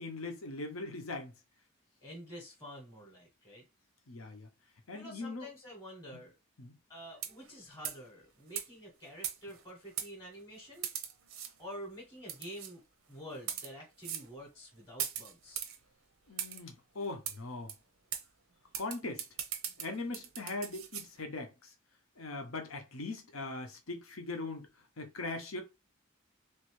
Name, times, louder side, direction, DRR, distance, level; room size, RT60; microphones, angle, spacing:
voice 1, 0.0-1.3 4.1-4.5 4.9-5.5 6.6-6.7 16.3-17.7 18.7-19.2 19.8-21.7 22.2-24.7 25.0-25.6, left 2 dB, 90° left, 0.9 m, -40 dB
voice 2, 2.0-3.6 4.9-6.3 6.9-10.9 11.6-12.8 13.1-15.7, equal, 15° left, 0.9 m, -48 dB
sound 1, 7.1-7.5 7.8-8.1 8.6-8.7 9.2-9.6 10.0-10.1 10.8-11.5 12.3-12.7 13.4-13.7 14.0-14.3 15.0-15.8 16.4-16.6 17.3-17.4 17.7-17.8 18.1-18.2 18.7-21.1, right 9 dB, 90° right, 0.6 m, -39 dB
3.1 x 2.7 x 3.1 m
head